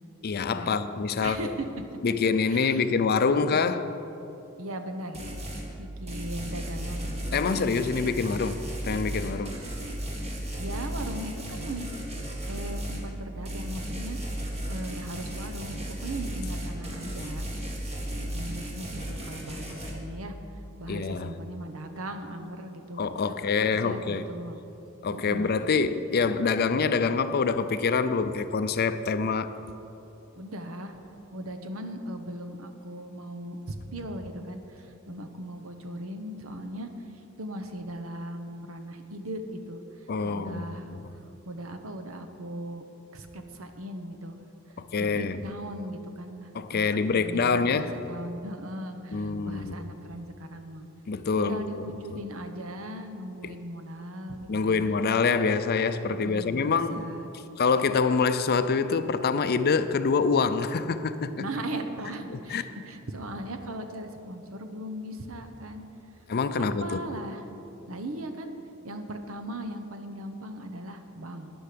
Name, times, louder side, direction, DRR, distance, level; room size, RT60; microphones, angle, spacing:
voice 1, 0.2-1.5 2.0-3.9 7.3-9.6 18.2-18.3 20.9-21.3 23.0-24.3 25.0-29.5 40.1-41.0 44.8-45.4 46.5-48.0 49.1-49.8 51.1-51.9 53.4-53.6 54.5-57.1 57.6-61.5 62.3-62.6 66.3-67.0, left 5 dB, 50° left, 0.5 m, -26 dB
voice 2, 1.2-1.9 2.5-2.8 3.5-3.8 4.6-5.2 5.8-7.9 10.6-11.9 12.5-17.5 18.3-20.3 20.8-23.0 23.6-24.6 25.1-25.5 30.4-31.0 31.3-36.9 37.4-41.0 41.5-42.8 43.1-44.4 45.0-47.8 48.1-50.9 51.4-54.9 56.1-57.3 61.4-65.8 66.5-67.4 67.9-68.6 68.8-71.5, right 1 dB, 80° right, 1.0 m, -38 dB
sound 1, 5.1-5.7 6.1-13.1 13.5-19.9, right 1 dB, 30° right, 1.9 m, -35 dB
12.5 x 10.0 x 5.1 m
head